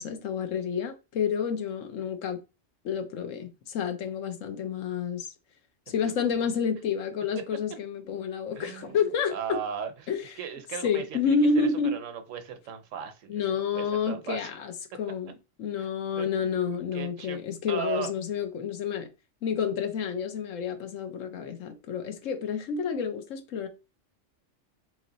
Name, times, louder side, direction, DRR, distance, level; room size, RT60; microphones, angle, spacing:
voice 1, 0.0-2.4 2.8-5.3 5.9-9.3 10.1-10.2 10.8-11.9 13.3-14.7 15.0-15.3 15.6-19.1 19.4-23.7, left 6 dB, 85° left, 1.1 m, -29 dB
voice 2, 5.9-6.5 8.6-14.5 15.8-15.9 16.2-17.4 17.7-18.1, right 7 dB, 80° right, 1.1 m, -38 dB
3.1 x 3.1 x 3.9 m
omnidirectional pair, 1.3 m